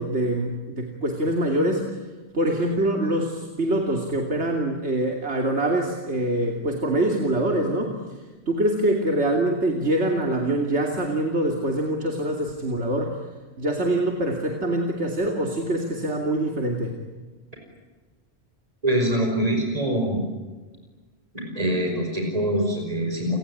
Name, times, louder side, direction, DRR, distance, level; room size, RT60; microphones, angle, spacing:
voice 1, 0.0-1.9 2.3-7.9 8.5-13.2 13.6-16.9, right 1 dB, 80° right, 1 dB, 3.1 m, -24 dB
voice 2, 18.8-20.2 21.3-23.4, right 1 dB, 35° right, 2 dB, 5.3 m, -24 dB
30.0 x 19.5 x 9.9 m, 1.3 s
omnidirectional pair, 1.1 m